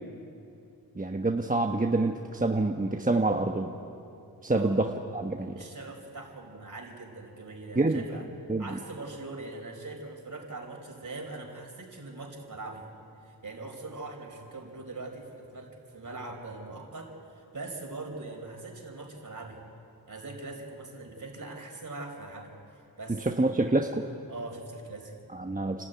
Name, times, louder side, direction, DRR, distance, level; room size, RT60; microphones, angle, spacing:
voice 1, 1.0-3.7 4.4-5.6 7.7-8.0 8.5-8.7 23.2-24.0 25.3-25.9, right 2 dB, 20° right, 3 dB, 1.2 m, -27 dB
voice 2, 4.5-4.8 5.6-8.3 8.6-12.9 13.2-19.6 20.1-23.5 24.3-25.3, right 2 dB, 50° right, 1 dB, 4.8 m, -42 dB
29.5 x 12.5 x 9.5 m, 2.6 s
cardioid pair, 65°, 41 cm